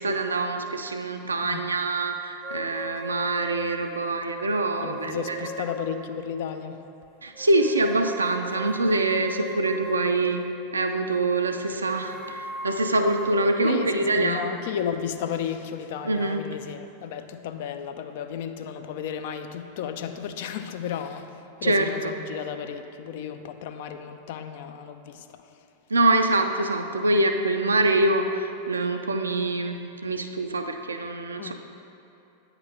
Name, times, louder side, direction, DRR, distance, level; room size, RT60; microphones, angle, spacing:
voice 1, 0.0-5.5 7.2-10.4 10.7-14.4 16.0-16.4 21.6-22.1 25.9-29.8 30.0-31.5, right 2 dB, 75° right, 6 dB, 0.4 m, -25 dB
voice 2, 1.4-1.7 4.8-6.8 13.6-25.4 31.4-31.5, left 8 dB, 50° left, 8 dB, 0.4 m, -33 dB
sound 1, 2.4-6.6 7.3-10.8 11.6-16.0, right 2 dB, ahead, 0.5 m, -40 dB
8.9 x 3.0 x 5.2 m, 2.8 s
figure-of-eight pair, 90°, 0 cm